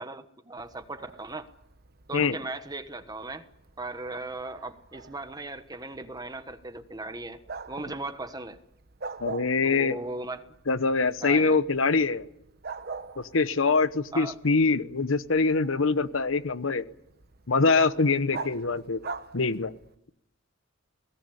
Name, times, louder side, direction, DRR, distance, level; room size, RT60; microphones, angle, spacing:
voice 1, 0.0-1.5 2.1-3.5 3.8-7.4 7.7-8.6 9.6-10.5 11.2-11.6 14.1-14.4, right 2 dB, 20° right, 9 dB, 1.3 m, -37 dB
Bark, 0.6-19.9, right 4 dB, 50° right, 1.1 m, -45 dB
voice 2, 9.2-10.0 10.7-12.2 13.2-16.9 17.5-19.0 19.3-19.7, left 4 dB, 70° left, 14 dB, 1.0 m, -24 dB
21.5 x 18.0 x 9.9 m, 0.79 s
head